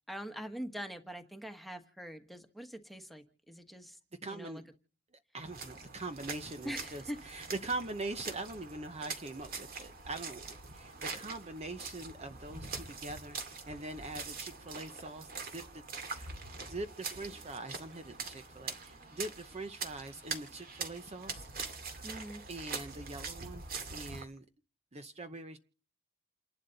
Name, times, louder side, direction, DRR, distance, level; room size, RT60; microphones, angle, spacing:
voice 1, 0.1-4.6 6.6-7.2 22.0-22.4, equal, ahead, 6 dB, 1.5 m, -43 dB
voice 2, 4.2-4.6 5.3-10.4 10.7-16.4 16.6-21.5 22.5-24.4 24.9-25.6, right 2 dB, 35° right, 9 dB, 0.8 m, -43 dB
sound 1, 5.4-24.2, right 4 dB, 50° right, 2.2 m, -44 dB
29.0 x 11.5 x 4.0 m, 0.40 s
head